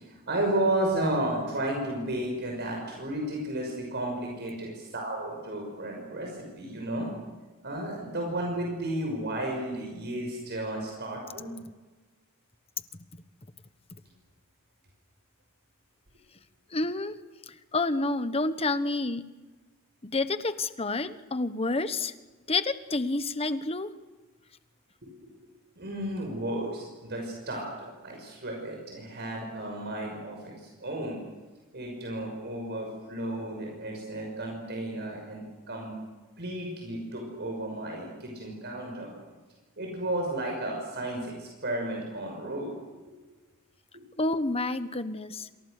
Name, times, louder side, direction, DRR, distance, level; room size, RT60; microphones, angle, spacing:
voice 1, 0.0-7.1 7.6-11.5 25.0-25.3 25.8-31.2 31.7-35.9 36.4-39.1 39.8-42.7 43.9-44.0, right 1 dB, 50° right, 1 dB, 6.3 m, -33 dB
voice 2, 16.7-17.1 17.5-19.2 20.0-22.1 22.5-23.9 44.2-45.5, left 2 dB, 30° left, 11 dB, 1.2 m, -29 dB
28.0 x 27.0 x 6.7 m, 1.3 s
head